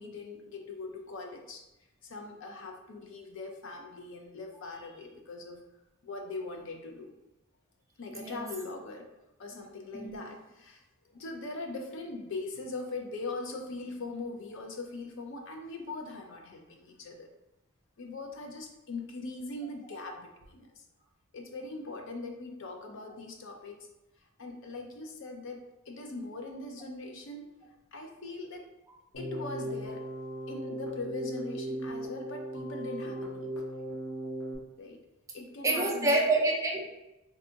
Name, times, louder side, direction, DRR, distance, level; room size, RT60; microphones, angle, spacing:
voice 1, 0.0-1.6 2.0-5.6 6.0-7.1 8.0-9.1 9.4-10.8 11.1-17.3 18.0-20.8 21.3-23.9 24.4-27.5 27.9-28.7 29.2-30.0 30.5-33.5 34.8-35.0 35.3-36.3, left 3 dB, 65° left, 3 dB, 0.5 m, -41 dB
voice 2, 8.1-8.5 9.9-10.2 19.9-20.0 35.6-36.9, right 2 dB, 15° right, -2 dB, 0.5 m, -27 dB
Keyboard (musical), 29.1-34.6, right 1 dB, 85° left, 1.0 m, -37 dB
2.6 x 2.4 x 3.8 m, 0.96 s
head